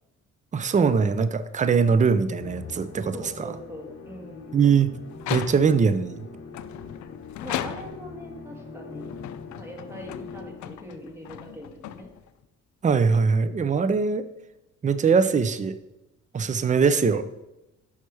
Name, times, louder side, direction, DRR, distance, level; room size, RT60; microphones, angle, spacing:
voice 1, 0.5-3.5 4.5-4.9 5.3-6.2 12.8-14.3 14.8-15.7 16.3-17.2, right 5 dB, 25° right, 12 dB, 0.5 m, -22 dB
Musical instrument, 2.4-10.9, left 5 dB, 50° left, 1.0 m, -43 dB
voice 2, 3.1-4.6 7.4-9.1 9.5-12.1, equal, 10° right, 1 dB, 1.8 m, -41 dB
sound 1, 5.1-5.9 6.5-8.2 8.9-12.4, left 12 dB, 70° left, 0.5 m, -37 dB
5.9 x 5.7 x 4.7 m, 0.94 s
cardioid pair, 90°, 30 cm